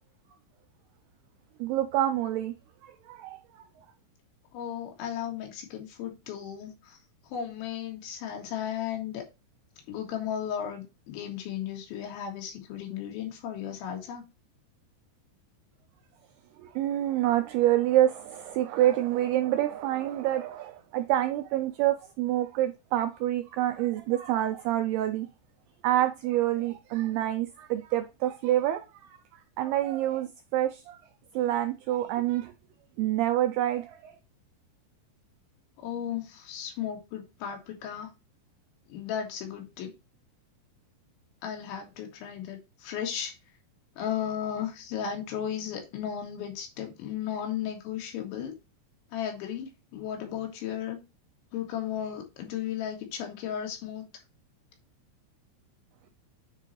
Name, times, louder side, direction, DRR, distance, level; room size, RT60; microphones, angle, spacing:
voice 1, 1.6-2.5 2.8-3.4 16.6-25.3 25.8-28.8 29.6-31.0 31.3-32.5 33.0-34.1, right 13 dB, 90° right, 2.3 m, -27 dB
voice 2, 4.5-7.0 7.3-9.2 9.9-14.2 35.8-38.1 38.9-39.9 41.4-43.3 44.0-48.5 49.1-51.0 51.5-54.1, left 9 dB, 85° left, 4.2 m, -35 dB
9.7 x 4.2 x 3.2 m
omnidirectional pair, 5.2 m